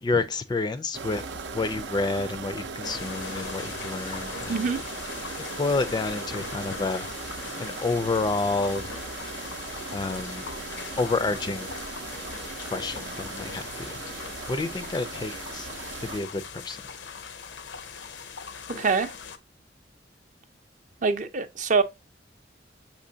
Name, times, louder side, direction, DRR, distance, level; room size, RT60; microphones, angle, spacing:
voice 1, 0.0-1.2 1.5-4.7 5.6-7.1 7.6-8.8 9.9-10.5 11.0-11.7 12.7-14.0 14.5-15.7 16.0-16.8, left 3 dB, 25° left, 0.3 m, -29 dB
sound 1, 0.9-16.2, right 4 dB, 90° right, 0.6 m, -38 dB
sound 2, 2.8-19.4, left 6 dB, 85° left, 0.6 m, -40 dB
voice 2, 18.8-19.1 21.0-21.8, right 4 dB, 45° right, 0.5 m, -24 dB
6.6 x 3.0 x 2.6 m
head